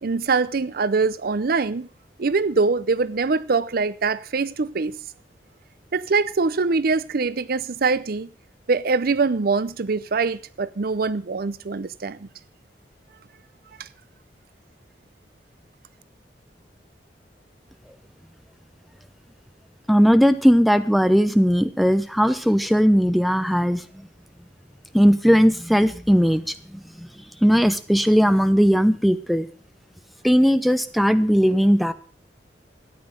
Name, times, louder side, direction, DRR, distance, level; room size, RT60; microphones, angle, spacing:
voice 1, 0.0-1.9 2.2-5.0 5.9-8.3 8.7-12.3 13.8-13.9, right 4 dB, 55° right, 0.6 m, -23 dB
voice 2, 19.9-23.8 24.9-26.4 27.4-29.5 30.2-31.9, equal, ahead, 0.8 m, -18 dB
13.0 x 9.6 x 6.4 m
head